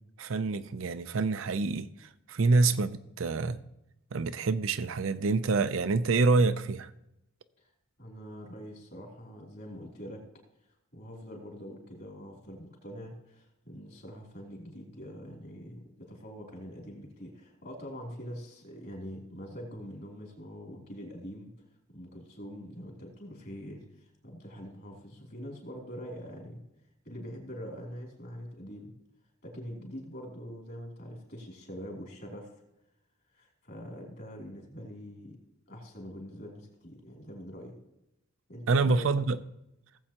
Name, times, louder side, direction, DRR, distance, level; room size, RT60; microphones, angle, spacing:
voice 1, 0.2-3.6 4.1-6.9 38.7-39.4, right 3 dB, 70° right, 0.5 m, -27 dB
voice 2, 8.0-10.2 10.9-21.5 21.9-26.6 27.0-28.9 29.4-32.5 33.3-35.4 35.7-37.8 38.5-39.1, equal, 50° left, 2.9 m, -44 dB
17.5 x 7.6 x 2.9 m
head